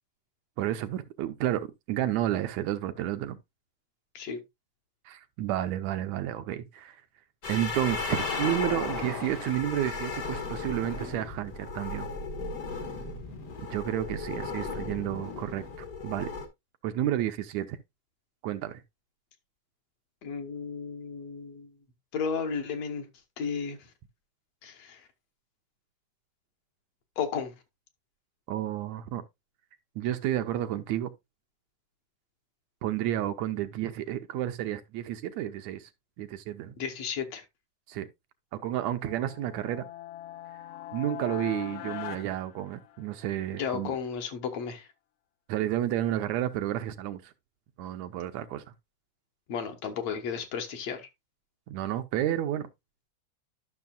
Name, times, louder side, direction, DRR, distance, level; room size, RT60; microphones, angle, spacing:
voice 1, 0.6-3.4 5.1-7.0 7.5-12.1 13.7-15.6 16.0-16.3 16.8-17.8 18.4-18.8 28.5-29.2 30.0-31.1 32.8-35.9 36.2-36.8 37.9-38.1 38.5-39.9 40.9-44.0 45.5-47.3 47.8-48.6 51.7-52.7, right 12 dB, 80° right, 1.9 m, -31 dB
sound 1, 7.4-16.5, left 4 dB, 50° left, 1.1 m, -35 dB
voice 2, 20.2-21.7 22.1-23.1 23.4-23.9 24.6-25.1 27.2-27.5 36.8-37.4 43.5-44.9 49.5-51.1, left 6 dB, 65° left, 2.2 m, -33 dB
sound 2, 39.0-43.3, left 13 dB, 90° left, 1.3 m, -41 dB
12.0 x 6.2 x 2.3 m
omnidirectional pair, 3.3 m